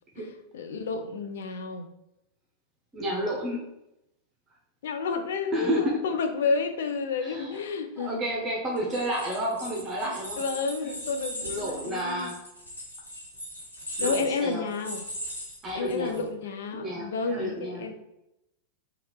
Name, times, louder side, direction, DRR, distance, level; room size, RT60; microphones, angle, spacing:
voice 1, 0.5-1.8 4.8-8.2 10.4-12.3 14.0-15.0 15.7-18.0, left 4 dB, 60° left, 7 dB, 0.3 m, -30 dB
voice 2, 2.9-3.6 5.5-6.0 7.2-7.6 8.0-10.4 10.8-10.9 11.4-12.3 14.0-14.7 15.6-16.2 16.7-18.0, equal, 25° right, -3 dB, 0.7 m, -31 dB
sound 1, 8.8-16.2, equal, 80° left, 0.9 m, -38 dB
2.7 x 2.3 x 3.2 m, 0.87 s
figure-of-eight pair, 90°, 0 cm